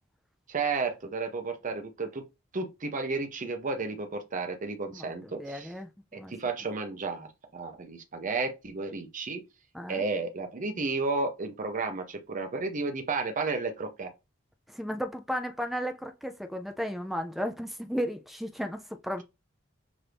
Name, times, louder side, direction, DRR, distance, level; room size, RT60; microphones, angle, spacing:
voice 1, 0.5-2.2 2.5-5.7 6.1-9.4 9.9-14.1, right 3 dB, 40° right, 0.7 m, -32 dB
voice 2, 4.9-6.3 9.7-10.0 14.7-19.2, equal, ahead, 0.4 m, -34 dB
6.0 x 2.6 x 3.3 m
head